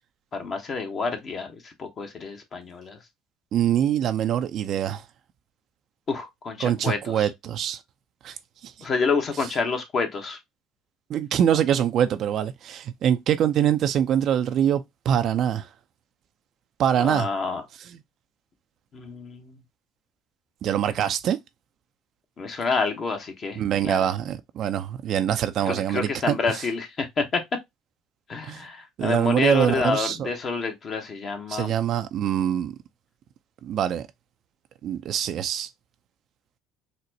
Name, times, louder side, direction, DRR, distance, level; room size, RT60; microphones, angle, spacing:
voice 1, 0.3-3.0 6.1-7.3 8.8-10.4 17.0-17.6 18.9-19.6 22.4-24.1 25.7-27.4 28.3-31.7, left 4 dB, 45° left, 0.9 m, -28 dB
voice 2, 3.5-5.0 6.6-7.8 8.2-8.4 8.6-8.7 11.1-15.7 16.8-17.3 20.6-21.4 23.6-26.5 28.5-28.6 29.0-30.3 31.5-32.7 33.6-34.1 34.8-35.7, right 10 dB, 55° right, 0.4 m, -24 dB
4.1 x 2.1 x 2.7 m
supercardioid pair, 80°, 0 cm